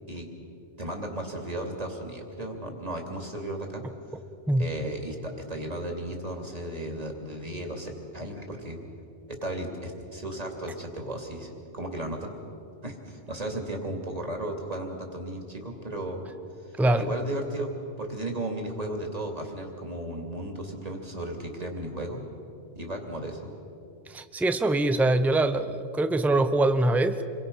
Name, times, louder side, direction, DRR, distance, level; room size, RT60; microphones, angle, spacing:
voice 1, 0.8-3.8 4.6-8.8 9.3-12.3 12.8-16.2 16.6-17.7 18.0-22.2 22.7-23.5, right 1 dB, 35° right, 2 dB, 2.8 m, -35 dB
voice 2, 16.8-17.1 24.1-27.2, right 2 dB, ahead, 9 dB, 0.7 m, -23 dB
28.0 x 22.5 x 5.6 m, 2.8 s
omnidirectional pair, 1.2 m